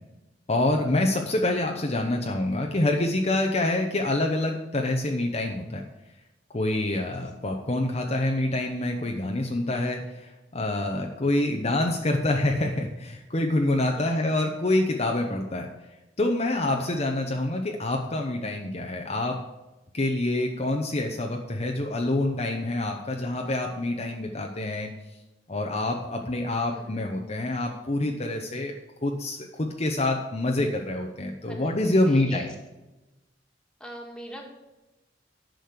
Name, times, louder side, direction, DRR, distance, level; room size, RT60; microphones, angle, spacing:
voice 1, 0.5-5.8 6.5-15.7 16.2-19.4 19.9-24.9 25.5-28.7 29.0-32.5, left 1 dB, 35° left, 2 dB, 0.9 m, -26 dB
voice 2, 13.9-14.2 16.7-16.9 26.7-27.1 31.5-32.5 33.8-34.4, equal, 5° left, 0 dB, 1.9 m, -42 dB
10.5 x 6.3 x 6.6 m, 1.0 s
head